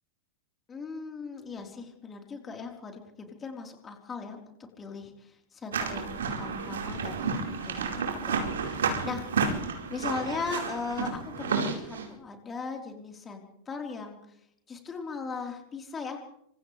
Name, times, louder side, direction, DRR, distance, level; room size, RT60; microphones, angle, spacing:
voice 1, 0.7-9.2 9.5-14.2 14.7-16.4, left 4 dB, 20° left, 2 dB, 4.5 m, -38 dB
sound 1, 5.7-12.1, right 5 dB, 65° right, 4.9 m, -31 dB
28.5 x 26.0 x 3.5 m, 0.71 s
figure-of-eight pair, 90°, 0 cm